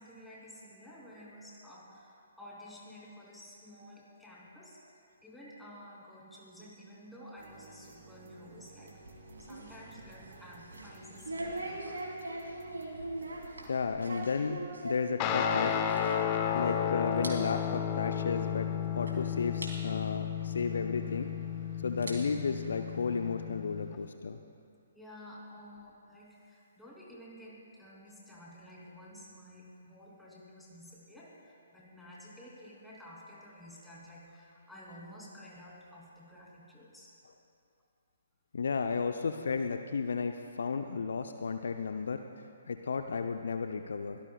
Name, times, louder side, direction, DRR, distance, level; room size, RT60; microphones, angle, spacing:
voice 1, 0.0-4.8 5.2-9.0 9.4-12.1 16.6-16.7 24.9-37.1, equal, ahead, -5 dB, 2.9 m, -52 dB
sound 1, 7.4-13.7, right 3 dB, 40° right, 1.4 m, -55 dB
sound 2, 8.8-16.8 17.0-17.3 17.6-17.8 18.5-18.6 19.1-19.2 19.6-19.7 21.1-21.2 21.8-23.3, right 2 dB, 70° right, 3.1 m, -42 dB
voice 2, 13.7-14.6 14.8-15.8 16.5-21.3 21.8-24.4 38.5-44.2, left 5 dB, 60° left, 7 dB, 0.6 m, -33 dB
Guitar, 15.2-24.0, left 8 dB, 25° left, 0.8 m, -33 dB
23.5 x 17.5 x 2.3 m, 2.5 s
figure-of-eight pair, 130°, 0 cm